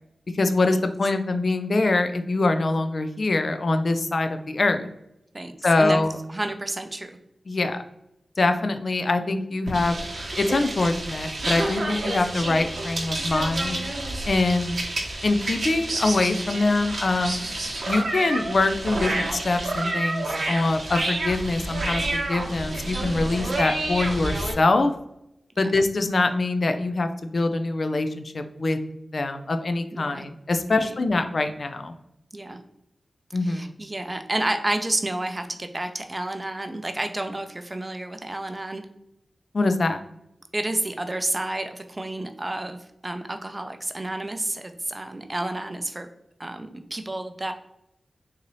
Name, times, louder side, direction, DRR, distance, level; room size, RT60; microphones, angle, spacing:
voice 1, 0.3-4.9 5.6-6.2 7.5-7.8 8.4-10.0 10.4-13.8 14.2-14.8 15.2-17.4 17.9-24.9 25.6-28.8 29.1-31.9 33.3-33.8 39.5-40.0, left 2 dB, 60° left, 8 dB, 0.3 m, -24 dB
voice 2, 5.3-6.0 6.3-7.1 25.6-25.7 29.9-30.2 30.7-31.1 32.3-32.6 33.4-38.8 40.5-42.8 43.0-46.1 46.4-47.5, right 1 dB, 30° right, 7 dB, 0.5 m, -30 dB
sound 1, 9.7-24.5, right 2 dB, 70° right, 0.9 m, -29 dB
3.9 x 2.7 x 3.1 m, 0.82 s
cardioid pair, 50°, 0 cm